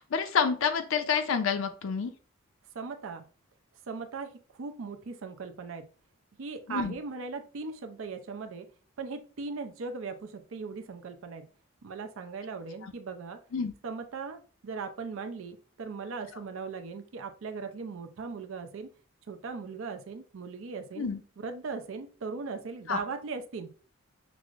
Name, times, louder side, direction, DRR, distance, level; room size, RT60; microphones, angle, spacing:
voice 1, 0.0-2.1 6.7-6.9 12.8-12.9 13.5-13.7 21.0-21.2 22.9-23.0, left 6 dB, 65° left, 7 dB, 0.4 m, -28 dB
voice 2, 2.7-3.2 3.9-5.9 6.4-8.7 9.0-11.5 11.8-13.4 13.8-18.9 19.3-21.1 21.4-23.7, right 4 dB, 70° right, 6 dB, 0.4 m, -38 dB
5.9 x 2.0 x 2.4 m, 0.38 s
head